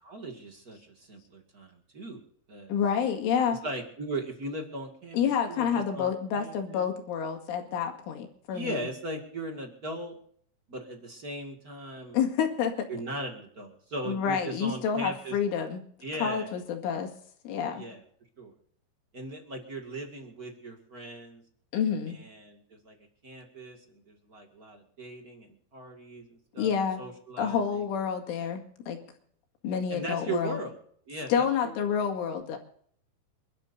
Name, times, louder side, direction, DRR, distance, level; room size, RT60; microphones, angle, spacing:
voice 1, 0.0-2.2 2.5-2.7 3.5-5.2 5.5-6.8 8.5-10.1 10.7-12.2 12.9-15.4 16.0-16.5 17.7-18.0 18.4-18.5 19.1-21.4 22.1-23.0 23.2-26.7 27.0-27.8 29.9-30.7 31.1-32.0, right 1 dB, 50° right, 2 dB, 1.0 m, -38 dB
voice 2, 2.7-3.6 5.1-8.9 12.1-12.7 14.0-15.8 16.2-17.1 17.4-17.8 21.7-22.2 26.6-27.0 27.4-29.0 29.6-30.6 31.3-32.6, left 7 dB, 85° left, 3 dB, 4.5 m, -28 dB
28.0 x 12.5 x 2.7 m, 0.62 s
omnidirectional pair, 5.5 m